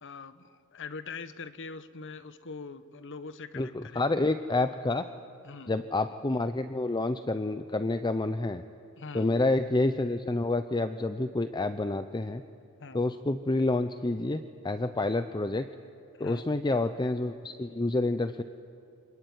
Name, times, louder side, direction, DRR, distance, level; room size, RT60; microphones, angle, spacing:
voice 1, 0.0-4.0 5.4-5.7 9.0-9.3 12.8-13.0 16.2-16.5, left 4 dB, 55° left, 12 dB, 1.2 m, -43 dB
voice 2, 3.5-5.1 5.7-8.6 9.1-12.4 12.9-15.7 16.2-18.4, left 2 dB, 20° left, 10 dB, 0.6 m, -28 dB
27.0 x 23.0 x 9.4 m, 2.8 s
head